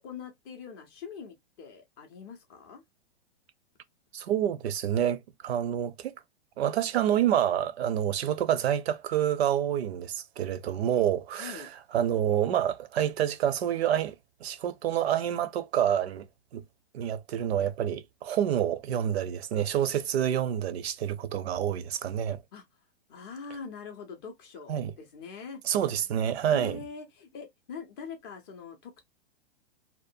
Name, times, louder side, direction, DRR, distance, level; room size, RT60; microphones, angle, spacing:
voice 1, 0.0-2.8 11.4-11.7 22.5-22.6 23.1-25.6 26.5-29.0, left 5 dB, 25° left, 0.4 m, -43 dB
voice 2, 4.1-6.1 6.6-11.6 11.9-14.2 14.4-16.3 16.5-16.6 16.9-22.4 24.7-24.9 25.7-26.8, right 10 dB, 80° right, 0.5 m, -28 dB
2.5 x 2.1 x 2.5 m
hypercardioid pair, 150°, 31 cm